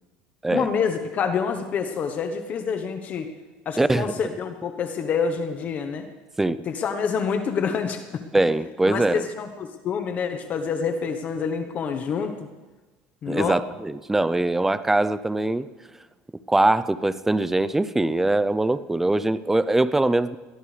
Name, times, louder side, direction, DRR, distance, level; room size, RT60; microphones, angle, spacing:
voice 1, 0.5-3.3 3.6-6.1 6.7-8.2 8.9-12.5 13.2-13.6, left 6 dB, 40° left, 7 dB, 1.0 m, -27 dB
voice 2, 3.8-4.1 6.4-6.6 8.3-9.3 13.3-15.7 16.5-20.4, right 2 dB, 10° right, 14 dB, 0.5 m, -22 dB
22.0 x 15.5 x 3.3 m, 1.2 s
supercardioid pair, 120°, 4 cm